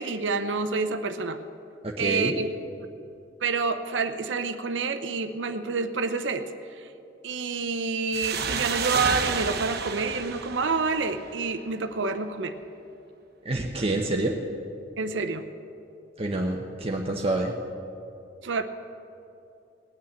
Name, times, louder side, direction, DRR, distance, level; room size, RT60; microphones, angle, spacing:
voice 1, 0.0-1.4 2.0-2.5 3.4-6.9 7.2-12.6 15.0-15.5 18.4-18.6, right 4 dB, 75° right, 9 dB, 0.7 m, -28 dB
voice 2, 1.8-2.4 13.4-14.4 16.2-17.6, right 2 dB, 30° right, 1 dB, 0.8 m, -27 dB
sound 1, 8.1-11.5, right 5 dB, 60° right, 1.1 m, -30 dB
19.0 x 6.5 x 8.6 m, 2.7 s
head